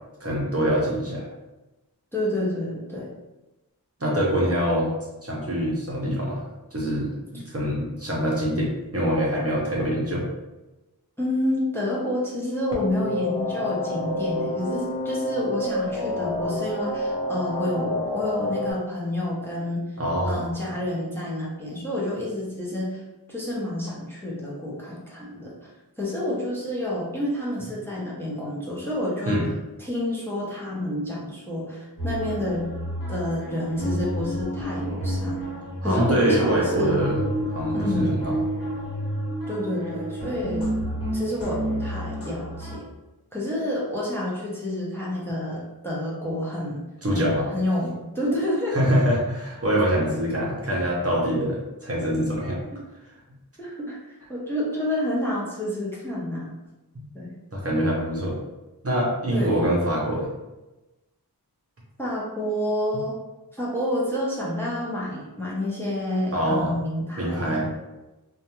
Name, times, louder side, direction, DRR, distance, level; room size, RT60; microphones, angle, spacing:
voice 1, 0.2-1.3 4.0-4.9 5.2-6.4 6.7-10.2 20.0-20.5 29.3-29.5 35.8-37.2 37.5-38.4 47.0-47.4 48.7-52.6 57.0-57.1 57.5-58.4 58.8-60.3 66.3-66.7 67.2-67.7, equal, 35° right, -5 dB, 0.7 m, -24 dB
voice 2, 2.1-3.1 7.3-7.4 11.2-19.8 20.2-23.0 23.3-25.7 26.0-29.5 29.8-32.7 33.1-35.4 35.8-37.0 37.7-38.1 39.5-40.7 41.1-42.9 43.3-46.8 47.1-48.7 53.6-56.5 57.1-57.3 59.3-59.6 62.0-63.1 63.5-67.8, left 1 dB, 5° left, -6 dB, 0.7 m, -29 dB
sound 1, 12.7-18.7, left 1 dB, 90° left, 0.7 m, -28 dB
sound 2, 32.0-42.8, equal, 35° left, 1.2 m, -30 dB
2.5 x 2.2 x 2.9 m, 1.1 s
wide cardioid pair, 65°, 39 cm